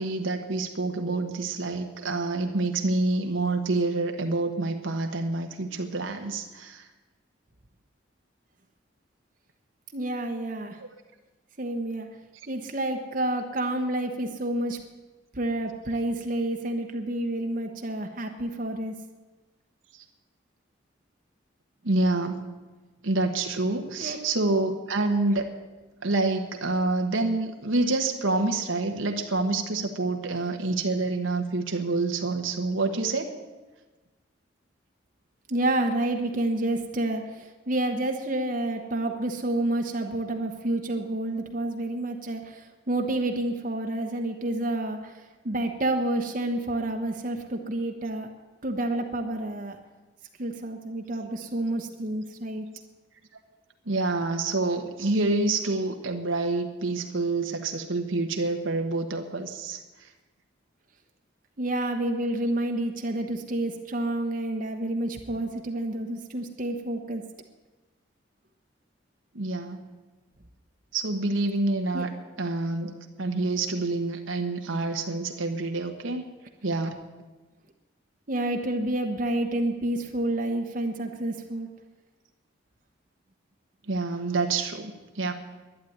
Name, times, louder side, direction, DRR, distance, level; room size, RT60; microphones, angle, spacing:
voice 1, 0.0-6.9 21.8-22.4 23.0-25.5 26.0-33.3 53.9-59.8 69.3-69.8 70.9-72.1 72.4-72.9 73.2-76.3 76.6-77.0 83.9-85.3, right 2 dB, 90° right, 4 dB, 1.3 m, -27 dB
voice 2, 9.9-10.8 11.6-12.1 12.5-14.8 15.3-18.9 24.0-24.2 35.5-45.1 45.4-48.3 48.6-49.8 50.4-52.7 61.6-67.2 71.9-72.0 78.3-81.7, right 1 dB, 45° right, 4 dB, 1.0 m, -29 dB
11.5 x 10.0 x 9.3 m, 1.2 s
head